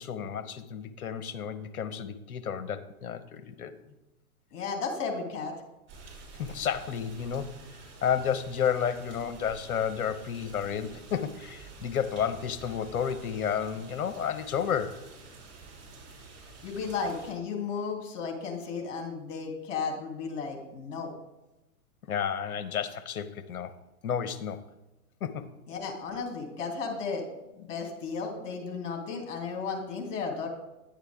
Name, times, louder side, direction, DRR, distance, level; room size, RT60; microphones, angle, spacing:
voice 1, 0.0-3.8 6.4-7.5 8.0-15.0 22.1-23.7 24.0-24.6 25.2-25.5, left 8 dB, 75° left, 11 dB, 1.1 m, -31 dB
voice 2, 4.5-5.5 16.6-21.1 25.7-27.2 27.6-30.5, left 5 dB, 55° left, 1 dB, 2.9 m, -34 dB
sound 1, 5.9-17.3, right 3 dB, 25° right, 3.1 m, -49 dB
10.5 x 9.0 x 3.6 m, 1.0 s
hypercardioid pair, 125°, 44 cm